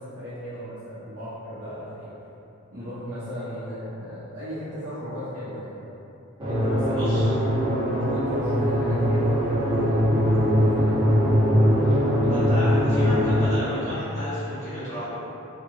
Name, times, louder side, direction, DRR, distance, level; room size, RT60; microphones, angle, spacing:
voice 1, 0.0-2.1 2.7-5.9 6.4-7.2 7.9-11.2, equal, 65° right, -14 dB, 1.0 m, -36 dB
sound 1, 6.4-13.5, equal, 20° right, 0.4 m, -21 dB
voice 2, 6.8-7.3 11.8-15.2, equal, 35° left, -13 dB, 1.4 m, -33 dB
3.3 x 2.4 x 3.0 m, 2.9 s
head